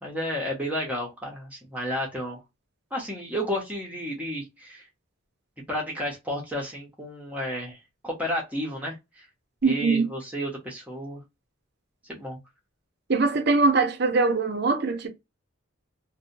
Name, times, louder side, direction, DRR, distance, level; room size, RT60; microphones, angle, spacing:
voice 1, 0.0-2.4 2.9-4.9 5.7-9.3 9.6-11.2 12.0-12.4, equal, 5° right, 0.7 m, -32 dB
voice 2, 9.6-10.1 13.1-15.1, right 3 dB, 50° right, 0.6 m, -22 dB
2.7 x 2.1 x 2.5 m
head